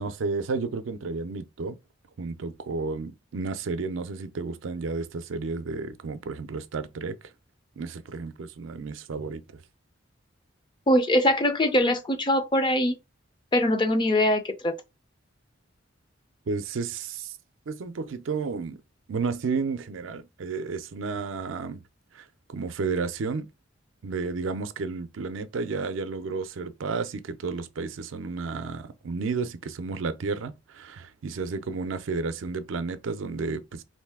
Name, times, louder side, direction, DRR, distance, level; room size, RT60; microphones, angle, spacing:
voice 1, 0.0-1.8 2.2-7.2 7.8-9.6 16.5-17.3 17.7-18.8 19.1-21.8 22.1-23.5 24.0-33.8, right 4 dB, 80° right, 0.5 m, -32 dB
voice 2, 10.9-13.0 13.5-14.8, left 1 dB, 25° left, 0.5 m, -22 dB
3.1 x 2.6 x 3.5 m
head